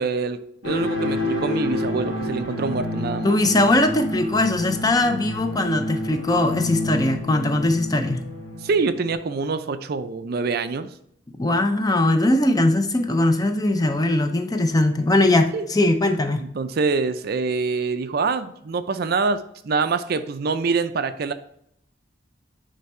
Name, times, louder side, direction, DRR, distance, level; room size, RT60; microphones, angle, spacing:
voice 1, 0.0-3.4 8.6-10.9 15.5-15.7 16.4-21.3, right 4 dB, 55° right, 11 dB, 0.4 m, -25 dB
sound 1, 0.6-9.1, left 1 dB, 75° left, 2.4 m, -29 dB
voice 2, 3.2-8.2 11.3-16.4, left 1 dB, 20° left, 7 dB, 0.5 m, -20 dB
9.4 x 3.4 x 4.3 m, 0.73 s
head